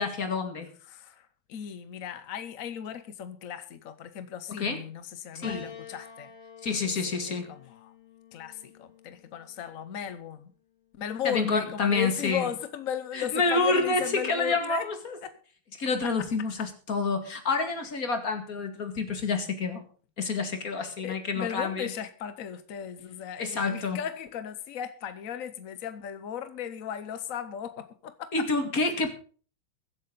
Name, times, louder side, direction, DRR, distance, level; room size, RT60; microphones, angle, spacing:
voice 1, 0.0-0.7 4.6-4.8 5.3-5.7 6.6-7.5 11.2-12.5 13.1-15.2 15.8-19.8 20.2-21.9 23.4-24.0 28.3-29.1, left 3 dB, 45° left, 2.5 m, -28 dB
voice 2, 0.8-6.3 7.0-7.9 8.3-10.5 11.0-14.9 15.2-15.4 16.0-16.3 16.6-16.7 20.8-28.5, left 9 dB, 60° left, 0.9 m, -36 dB
Piano, 5.4-9.9 10.9-11.7, left 6 dB, 85° left, 3.2 m, -47 dB
22.5 x 8.2 x 4.0 m
omnidirectional pair, 2.3 m